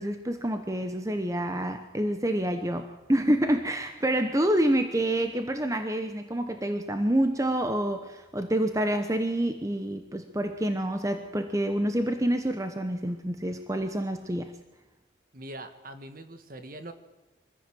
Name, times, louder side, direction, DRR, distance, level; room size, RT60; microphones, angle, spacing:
voice 1, 0.0-14.5, right 1 dB, 15° right, 7 dB, 1.0 m, -27 dB
voice 2, 15.3-16.9, right 1 dB, 45° right, 9 dB, 1.6 m, -42 dB
23.5 x 15.0 x 7.8 m, 1.1 s
head